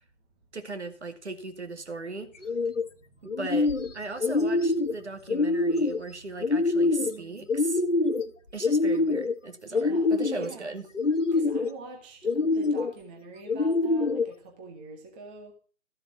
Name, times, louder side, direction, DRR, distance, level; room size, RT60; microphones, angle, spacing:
voice 1, 0.5-2.3 3.2-7.8 8.5-10.9, right 3 dB, 65° right, 9 dB, 2.3 m, -37 dB
sound 1, 2.3-2.8 3.2-3.9 4.2-4.9 5.3-6.0 6.4-7.1 7.5-8.3 8.6-9.3 9.7-10.5 10.9-11.7 12.2-12.9 13.5-14.3, left 3 dB, 75° left, 1.5 m, -25 dB
voice 2, 7.0-7.5 9.7-10.7 11.3-15.5, right 3 dB, 10° right, 2 dB, 0.7 m, -45 dB
13.5 x 7.4 x 6.1 m, 0.38 s
figure-of-eight pair, 140°, 37 cm